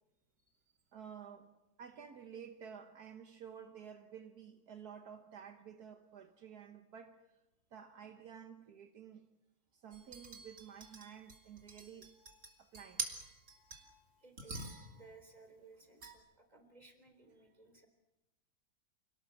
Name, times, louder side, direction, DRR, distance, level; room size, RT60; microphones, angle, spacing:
voice 1, 0.9-1.5 1.8-7.4 7.7-9.3 9.7-12.2 12.6-13.1 17.4-17.5, right 8 dB, 70° right, 1.7 m, -52 dB
sound 1, 9.9-14.0 14.4-15.1 16.0-16.1, right 3 dB, 50° right, 3.1 m, -46 dB
voice 2, 14.2-17.9, right 3 dB, 25° right, 3.9 m, -60 dB
27.5 x 18.5 x 7.7 m
omnidirectional pair, 1.7 m